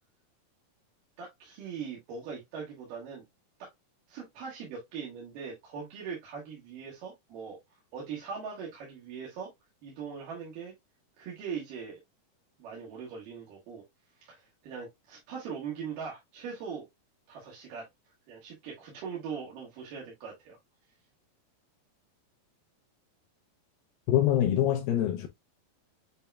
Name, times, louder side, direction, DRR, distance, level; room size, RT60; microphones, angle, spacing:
voice 1, 1.2-3.2 3.6-3.7 4.1-7.6 7.9-9.5 9.8-10.7 11.2-12.0 12.6-13.8 14.2-16.9 17.3-17.9 18.3-20.6, right 6 dB, 70° right, 3.0 m, -40 dB
voice 2, 24.1-25.3, left 11 dB, 80° left, 2.4 m, -25 dB
8.2 x 2.9 x 2.2 m
omnidirectional pair, 4.1 m